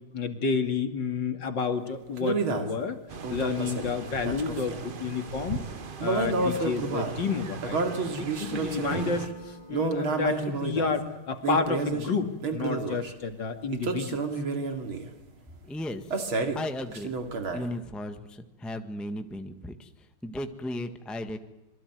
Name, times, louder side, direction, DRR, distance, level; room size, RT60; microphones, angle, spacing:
voice 1, 0.1-3.0 3.3-5.6 6.0-7.8 8.2-14.2, left 5 dB, 60° left, 7 dB, 3.0 m, -30 dB
sound 1, 2.2-2.7 3.2-4.8 6.0-7.2 7.6-9.2 9.7-10.9 11.4-12.1 12.4-13.1 13.7-15.1 16.1-16.7 16.9-17.7, right 3 dB, 75° right, 3.4 m, -30 dB
sound 2, 3.1-9.3, right 5 dB, 35° right, 0.8 m, -39 dB
Acoustic guitar / Strum, 8.9-12.0, right 4 dB, 40° left, 5.5 m, -43 dB
voice 2, 15.6-16.2 16.5-17.1 17.5-21.4, left 1 dB, ahead, 7 dB, 1.3 m, -36 dB
27.0 x 23.0 x 9.4 m, 0.90 s
omnidirectional pair, 2.3 m